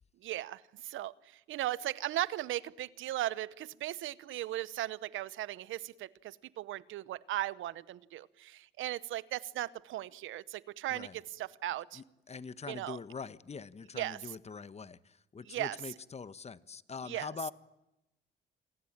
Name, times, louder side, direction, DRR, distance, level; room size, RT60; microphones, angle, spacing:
voice 1, 0.2-12.0 12.7-13.0 13.9-14.2 15.5-15.8 17.1-17.3, right 14 dB, 80° right, 1.0 m, -37 dB
voice 2, 10.9-11.2 11.9-17.5, left 5 dB, 35° left, 1.1 m, -44 dB
28.0 x 22.0 x 8.8 m
cardioid pair, 90°, 20 cm